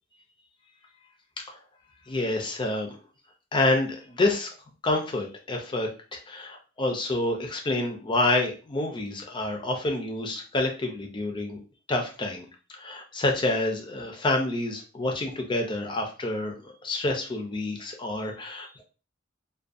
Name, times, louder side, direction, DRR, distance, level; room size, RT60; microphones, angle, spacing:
voice 1, 2.1-3.0 3.5-4.5 4.8-11.6 11.9-12.5 12.8-18.8, left 2 dB, 25° left, 2 dB, 0.4 m, -28 dB
2.4 x 2.2 x 2.5 m, 0.35 s
head